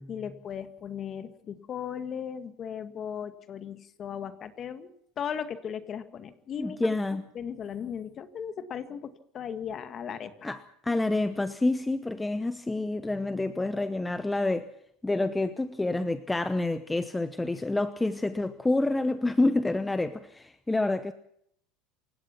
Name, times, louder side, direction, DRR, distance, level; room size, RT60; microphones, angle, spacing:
voice 1, 0.0-4.9 5.2-6.9 7.4-10.5, left 8 dB, 30° left, 2.0 m, -37 dB
voice 2, 6.6-7.2 10.4-14.7 15.0-21.1, left 2 dB, 5° left, 0.9 m, -28 dB
27.5 x 16.5 x 6.0 m
supercardioid pair, 150°, 0 cm